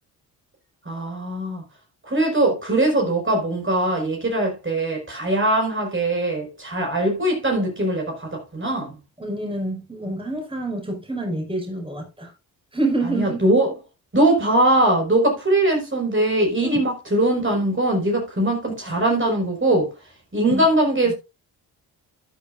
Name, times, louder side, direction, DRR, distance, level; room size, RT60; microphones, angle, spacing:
voice 1, 0.8-1.6 2.1-8.9 13.1-13.7 14.1-19.9 20.3-21.1, right 1 dB, 25° right, 5.0 m, -21 dB
voice 2, 9.2-12.3 12.7-13.4 16.6-16.8 20.5-20.6 21.1-21.2, right 2 dB, 10° right, 5.2 m, -27 dB
13.0 x 9.0 x 2.5 m
supercardioid pair, 55°, 43 cm